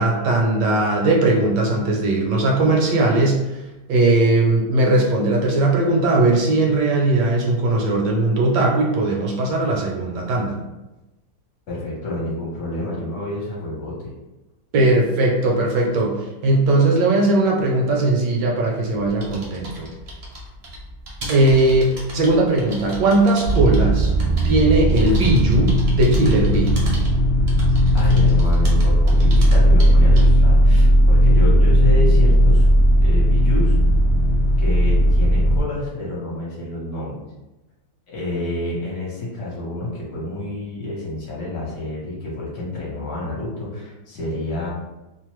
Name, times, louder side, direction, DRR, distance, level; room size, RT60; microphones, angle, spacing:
voice 1, 0.0-3.4 3.9-10.6 14.7-19.9 21.3-24.1 24.4-26.7, right 2 dB, 75° right, -1 dB, 1.1 m, -18 dB
voice 2, 11.7-14.1 27.9-32.7 33.0-33.8 34.6-37.2 38.1-44.7, left 2 dB, 60° left, -5 dB, 1.2 m, -28 dB
sound 1, 18.9-30.5, equal, 60° right, 0.7 m, -36 dB
sound 2, 23.4-35.6, equal, 85° left, 0.5 m, -16 dB
3.0 x 2.0 x 3.0 m, 1.0 s
omnidirectional pair, 2.0 m